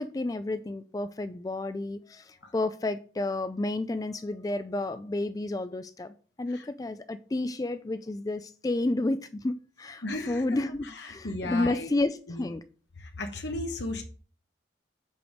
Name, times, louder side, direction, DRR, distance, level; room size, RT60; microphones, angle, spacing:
voice 1, 0.0-12.6, left 2 dB, 20° left, 0.3 m, -31 dB
voice 2, 10.0-10.4 11.0-11.9 12.3-12.5 13.0-14.0, left 2 dB, 75° left, 1.1 m, -35 dB
7.6 x 3.5 x 6.1 m
head